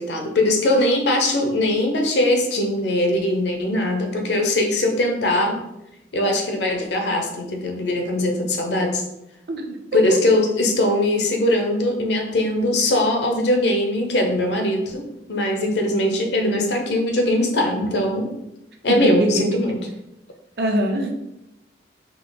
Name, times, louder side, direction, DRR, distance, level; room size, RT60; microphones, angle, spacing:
voice 1, 0.0-5.6 6.1-9.0 9.9-18.3 18.8-19.9, left 1 dB, 65° left, 3 dB, 0.7 m, -21 dB
voice 2, 9.5-10.0 19.0-19.6 20.6-21.2, right 1 dB, 55° right, 4 dB, 0.5 m, -23 dB
3.8 x 2.8 x 3.9 m, 0.87 s
head